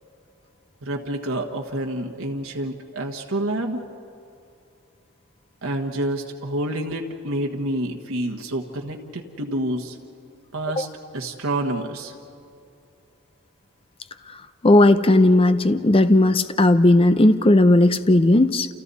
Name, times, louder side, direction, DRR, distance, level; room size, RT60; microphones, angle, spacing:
voice 1, 0.8-3.8 5.6-10.0 10.5-10.9 11.1-12.1, right 1 dB, 85° right, 2 dB, 1.4 m, -28 dB
voice 2, 14.6-18.7, left 1 dB, 25° left, 12 dB, 0.6 m, -16 dB
28.5 x 28.5 x 4.2 m, 2.5 s
head